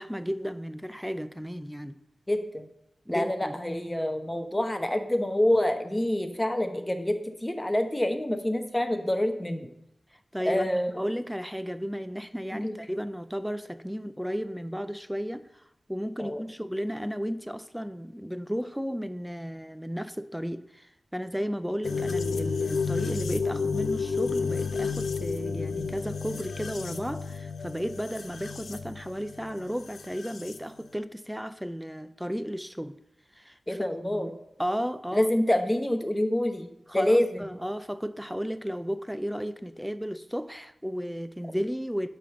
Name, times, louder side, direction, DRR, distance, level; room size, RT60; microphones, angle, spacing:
voice 1, 0.0-2.0 3.1-3.6 10.1-33.0 33.3-34.3 34.6-35.3 36.9-42.1, equal, ahead, 0.3 m, -34 dB
voice 2, 2.3-2.7 3.1-9.7 10.4-11.0 12.5-12.8 16.2-16.4 33.7-34.3 35.1-36.7 36.9-37.4, left 1 dB, 15° left, 0.9 m, -27 dB
sound 1, 21.8-30.6, left 5 dB, 85° left, 0.6 m, -31 dB
10.0 x 3.5 x 6.8 m
wide cardioid pair, 105°, 0 cm